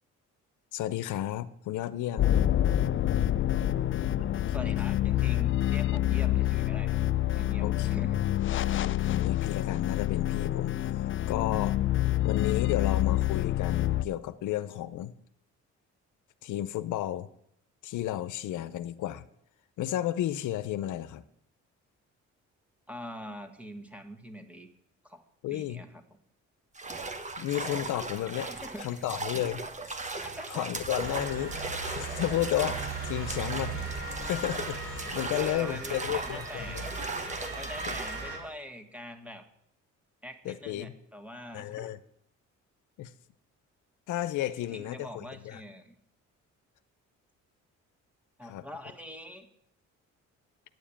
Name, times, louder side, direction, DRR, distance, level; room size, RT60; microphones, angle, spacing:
voice 1, 0.7-2.3 4.6-4.7 7.6-7.9 8.5-11.7 12.2-15.1 16.4-17.3 17.8-19.2 19.8-21.2 25.4-25.8 27.4-28.5 28.8-29.6 29.9-30.1 30.5-33.9 34.2-36.9 37.9-38.0 40.4-40.9 41.5-42.0 43.0-43.1 44.1-45.6 48.5-48.7, left 13 dB, 80° left, 0.7 m, -33 dB
sound 1, 2.2-14.1, left 13 dB, 45° left, 0.4 m, -27 dB
voice 2, 4.3-7.0 7.3-8.3 22.9-24.7 25.0-25.2 25.5-26.2 28.5-29.1 30.0-30.8 35.4-36.9 37.5-39.5 40.2-41.9 44.6-46.0 48.4-49.5, equal, 5° right, 1.7 m, -44 dB
sound 2, 26.8-38.3, right 3 dB, 25° right, 1.3 m, -38 dB
Motor vehicle (road) / Siren, 31.0-38.4, right 3 dB, 45° right, 4.9 m, -38 dB
9.6 x 7.2 x 8.6 m
cardioid pair, 90°, 30 cm